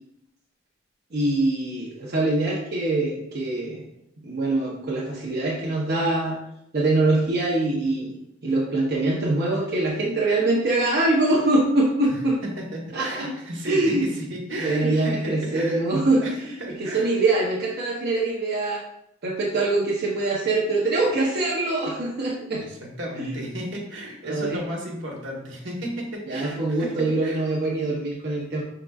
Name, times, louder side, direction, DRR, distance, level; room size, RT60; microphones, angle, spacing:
voice 1, 1.1-3.9 4.2-6.4 6.7-8.2 8.4-12.4 12.9-13.3 13.7-14.1 14.6-16.2 16.8-18.8 19.2-22.7 23.2-23.3 24.3-24.6 26.3-28.6, right 2 dB, 55° right, -5 dB, 0.7 m, -23 dB
voice 2, 12.1-15.8 16.2-17.1 22.6-27.4, equal, 80° right, -1 dB, 1.2 m, -34 dB
6.1 x 3.8 x 2.3 m, 0.80 s
head